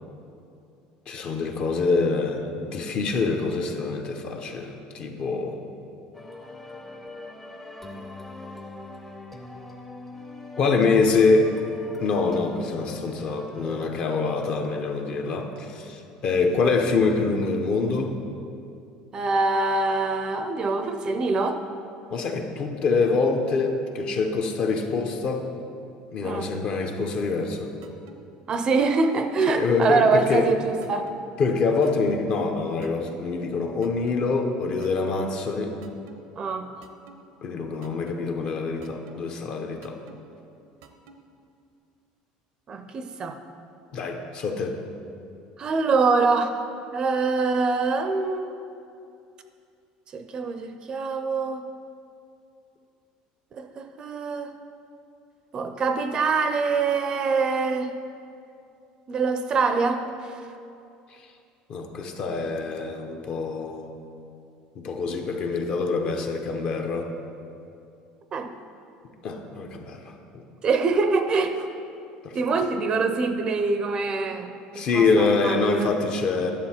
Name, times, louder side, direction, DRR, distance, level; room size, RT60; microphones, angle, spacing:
voice 1, 1.1-5.6 10.6-11.6 12.0-18.2 22.1-25.4 26.1-27.7 29.5-30.5 31.4-35.7 37.4-40.0 43.9-44.8 61.1-61.2 61.7-63.9 64.7-67.1 69.2-70.4 72.2-72.4 74.7-76.5, left 4 dB, 45° left, 4 dB, 0.9 m, -25 dB
sound 1, 6.1-13.9, left 2 dB, 10° left, 0.7 m, -41 dB
voice 2, 19.1-21.6 26.2-26.5 28.5-31.1 36.4-36.7 42.7-43.4 45.6-46.5 46.9-48.6 50.1-51.6 53.5-54.5 55.5-57.9 59.1-60.0 68.3-68.5 70.6-71.7 72.3-75.9, right 4 dB, 30° right, 8 dB, 0.5 m, -24 dB
sound 2, 27.8-28.2 28.8-29.2 29.8-30.2 30.8-31.2 31.8-32.2 32.8-33.2 33.8-34.2 34.8-35.2 35.8-36.2 36.8-37.2 37.8-38.2 38.8-39.2 39.8-40.2 40.8-41.2, right 5 dB, 90° right, 0.8 m, -49 dB
10.0 x 7.2 x 4.4 m, 2.6 s
cardioid pair, 140°, 3 cm